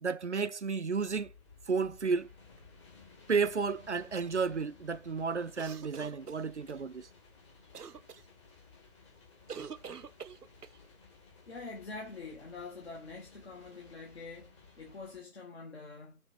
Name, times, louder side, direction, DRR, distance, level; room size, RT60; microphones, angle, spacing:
voice 1, 0.0-1.3 1.7-2.3 3.3-7.1, right 5 dB, 50° right, 0.5 m, -32 dB
sound 1, 1.0-15.2, left 4 dB, 20° left, 1.6 m, -58 dB
sound 2, 5.6-6.8 7.7-8.2 9.5-10.8, right 6 dB, 85° right, 0.7 m, -45 dB
voice 2, 11.5-16.2, left 4 dB, 45° left, 1.8 m, -45 dB
6.2 x 3.5 x 5.2 m
figure-of-eight pair, 155°, 45 cm